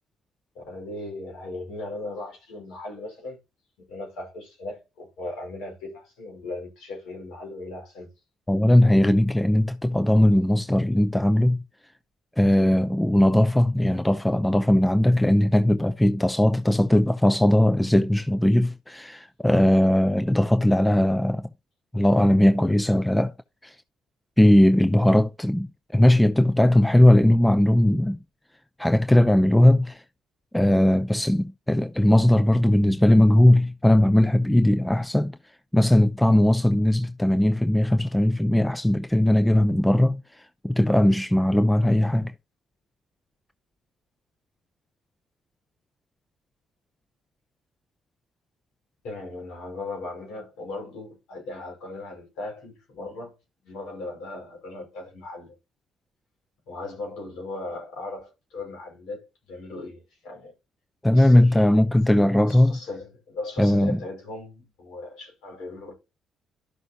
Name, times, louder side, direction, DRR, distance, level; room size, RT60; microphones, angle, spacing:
voice 1, 0.6-3.4 3.9-8.1 49.0-53.4 53.6-55.6 56.7-60.5 61.1-61.7 62.1-65.9, left 2 dB, 65° left, 5.1 m, -38 dB
voice 2, 8.5-11.6 12.4-21.5 21.9-23.3 23.6-23.7 24.4-28.2 28.8-30.0 30.5-35.4 35.7-40.2 40.6-42.3 61.0-62.8 63.6-64.0, left 1 dB, 10° left, 0.5 m, -19 dB
12.0 x 6.2 x 2.8 m
hypercardioid pair, 50°, 0 cm